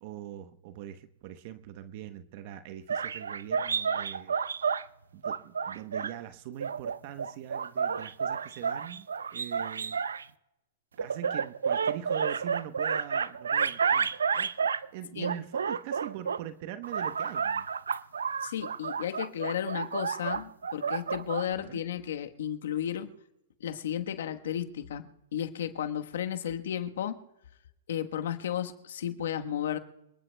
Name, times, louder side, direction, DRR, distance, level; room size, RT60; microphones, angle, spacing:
voice 1, 0.0-4.4 5.1-10.0 11.0-14.5 14.9-17.7 21.5-21.8, right 11 dB, 50° right, 10 dB, 0.9 m, -42 dB
sound 1, 2.9-4.8 5.2-6.1 6.6-10.2 11.0-14.9 15.2-16.4 16.8-21.5, right 6 dB, 90° right, 0.5 m, -30 dB
voice 2, 18.4-23.1 23.6-27.2 27.9-29.8, left 10 dB, 75° left, 7 dB, 1.2 m, -33 dB
27.5 x 19.5 x 2.3 m, 0.89 s
hypercardioid pair, 125°, 0 cm